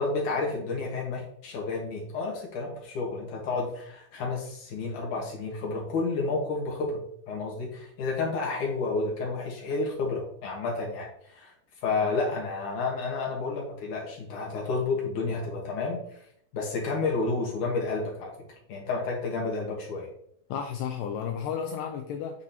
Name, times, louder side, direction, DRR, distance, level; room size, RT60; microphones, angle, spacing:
voice 1, 0.0-7.0 7.3-11.5 11.8-16.2 16.5-18.3 18.7-20.1, left 3 dB, 60° left, -2 dB, 2.8 m, -30 dB
voice 2, 20.5-22.4, left 7 dB, 85° left, 5 dB, 2.0 m, -33 dB
8.7 x 5.9 x 2.9 m, 0.67 s
omnidirectional pair, 4.3 m